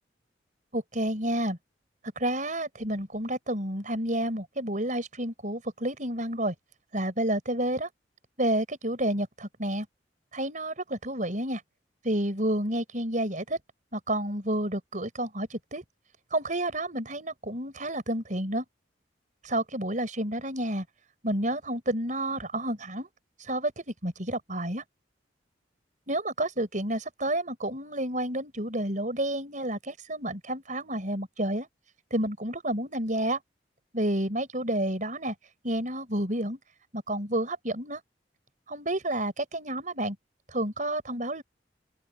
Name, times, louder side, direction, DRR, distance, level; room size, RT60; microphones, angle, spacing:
voice 1, 0.7-1.6 2.2-6.5 6.9-7.9 8.4-9.9 10.3-11.6 12.0-13.6 13.9-15.8 16.3-18.6 19.4-20.9 21.2-23.1 23.4-24.8 26.1-31.7 32.1-33.4 33.9-35.4 35.6-36.6 36.9-38.0 38.7-40.2 40.5-41.4, right 1 dB, 45° right, 5.1 m, -30 dB
open air
head